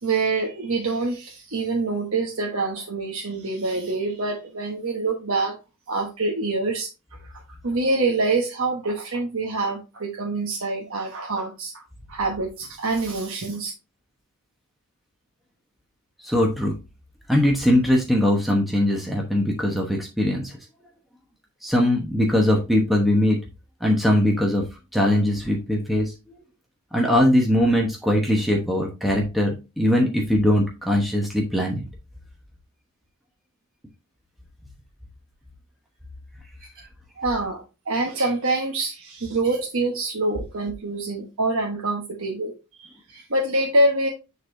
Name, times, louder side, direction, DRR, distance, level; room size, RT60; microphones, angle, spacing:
voice 1, 0.0-5.5 5.9-6.9 7.2-11.8 12.1-13.7 36.7-36.9 37.2-42.5 42.8-44.1, right 2 dB, 65° right, 1 dB, 1.1 m, -25 dB
voice 2, 16.2-16.7 17.3-20.6 21.6-23.4 23.8-24.7 24.9-26.1 26.9-31.8, left 1 dB, ahead, -1 dB, 1.0 m, -21 dB
9.4 x 4.0 x 2.6 m, 0.28 s
head